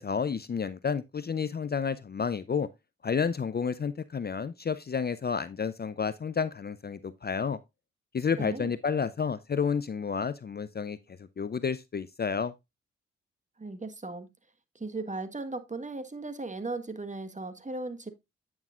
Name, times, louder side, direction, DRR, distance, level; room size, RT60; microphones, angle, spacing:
voice 1, 0.0-2.7 3.0-7.6 8.1-11.0 11.4-12.5, left 6 dB, 35° left, 0.6 m, -30 dB
voice 2, 8.4-8.7 13.6-14.3 14.7-18.1, right 3 dB, 25° right, 1.5 m, -37 dB
8.9 x 6.2 x 2.4 m
supercardioid pair, 45°, 29 cm